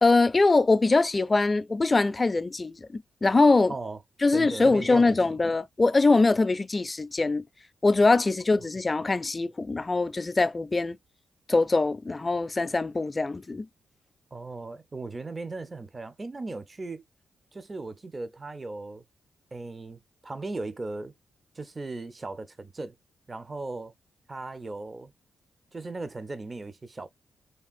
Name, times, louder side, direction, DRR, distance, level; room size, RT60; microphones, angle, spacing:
voice 1, 0.0-2.9 3.2-3.7 4.2-7.4 7.8-11.0 11.5-13.7, left 3 dB, 35° left, 0.3 m, -23 dB
voice 2, 4.3-5.4 14.3-17.0 17.5-19.0 19.5-21.1 21.5-22.9 23.3-23.9 24.3-25.1 25.7-27.1, right 3 dB, 35° right, 0.5 m, -37 dB
3.3 x 2.4 x 2.3 m
supercardioid pair, 50°, 0 cm